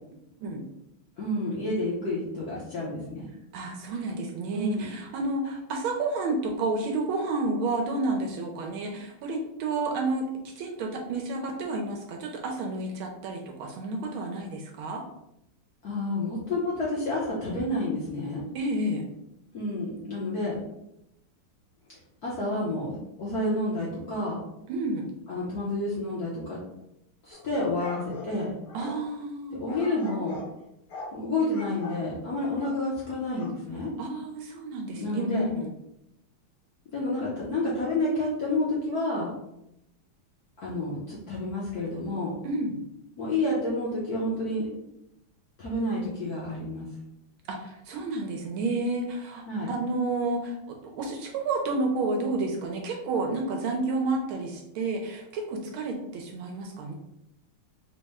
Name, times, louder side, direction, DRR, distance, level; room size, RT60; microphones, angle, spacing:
voice 1, 1.2-3.2 4.5-4.9 15.8-18.4 19.5-20.7 22.2-24.4 25.3-26.6 27.2-28.5 29.5-30.4 31.1-33.9 35.0-35.5 36.9-39.3 40.6-42.4 43.2-44.7 45.6-46.9 49.5-49.7, left 2 dB, 60° left, -6 dB, 1.0 m, -29 dB
voice 2, 3.5-10.3 10.6-15.0 18.5-19.0 24.7-25.1 28.7-29.6 34.0-35.7 42.4-42.7 47.5-56.9, right 2 dB, 80° right, 2 dB, 1.4 m, -30 dB
sound 1, 27.3-29.0 29.7-30.5 30.9-31.2 31.5-32.0 32.6-32.8 33.3-33.5, left 2 dB, 80° left, 1.9 m, -42 dB
4.1 x 2.1 x 3.4 m, 0.82 s
omnidirectional pair, 2.4 m